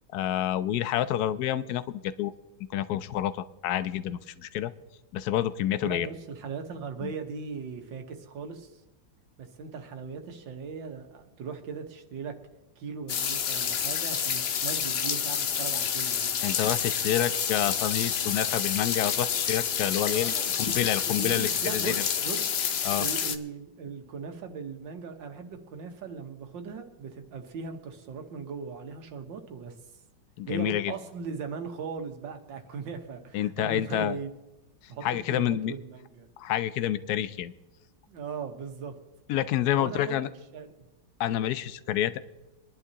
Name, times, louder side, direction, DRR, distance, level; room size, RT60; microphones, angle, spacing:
voice 1, 0.1-2.3 2.7-4.7 5.1-6.1 7.0-7.1 16.4-21.9 22.8-23.1 30.4-30.9 33.3-34.2 35.0-35.7 36.4-37.5 39.3-40.3 41.2-42.2, left 11 dB, 70° left, 14 dB, 1.0 m, -28 dB
voice 2, 5.8-8.8 9.4-12.4 12.8-16.4 20.1-20.8 21.1-22.4 23.0-29.8 30.5-34.3 34.9-36.3 38.1-39.0 39.7-40.2 40.5-40.9, right 5 dB, 80° right, 5 dB, 1.9 m, -39 dB
sound 1, 13.1-23.4, left 8 dB, 85° left, 0.5 m, -29 dB
24.5 x 11.0 x 2.9 m, 1.0 s
omnidirectional pair, 2.0 m